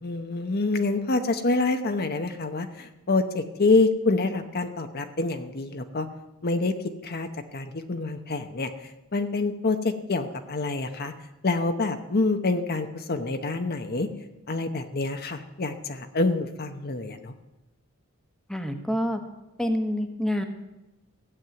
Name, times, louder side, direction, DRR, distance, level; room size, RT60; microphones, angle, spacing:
voice 1, 0.0-6.1 6.4-6.7 7.0-7.3 7.5-8.7 9.1-11.1 11.4-14.1 14.5-17.3, left 3 dB, 45° left, 7 dB, 0.9 m, -26 dB
voice 2, 18.5-19.2 19.6-20.4, equal, ahead, 5 dB, 1.2 m, -27 dB
15.5 x 7.4 x 9.3 m, 1.0 s
head